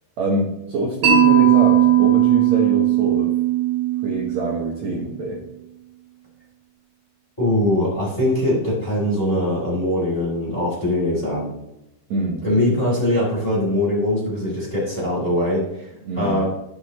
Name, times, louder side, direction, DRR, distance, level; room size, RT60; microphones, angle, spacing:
voice 1, 0.2-3.3 4.0-5.4 12.1-12.4 16.0-16.4, right 1 dB, 80° right, -2 dB, 1.6 m, -25 dB
Mallet percussion, 1.0-5.0, right 11 dB, 65° right, 2.9 m, -17 dB
voice 2, 7.4-11.5 12.4-15.9 16.2-16.4, left 1 dB, 10° left, -6 dB, 2.4 m, -21 dB
12.0 x 5.2 x 3.1 m, 0.89 s
omnidirectional pair, 5.1 m